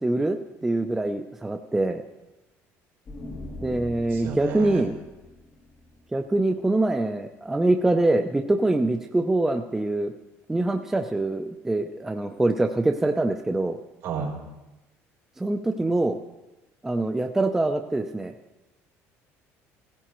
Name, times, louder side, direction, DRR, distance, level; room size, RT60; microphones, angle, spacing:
voice 1, 0.0-2.0 3.6-4.9 6.1-10.1 10.5-13.8 15.4-16.2 16.8-18.3, right 2 dB, 5° right, 5 dB, 0.4 m, -24 dB
sound 1, 3.0-6.7, left 1 dB, 30° left, 3.0 m, -42 dB
voice 2, 4.1-4.9 14.0-14.3, right 6 dB, 60° right, -2 dB, 3.7 m, -32 dB
17.5 x 16.0 x 3.0 m, 1.1 s
cardioid pair, 170°, 5 cm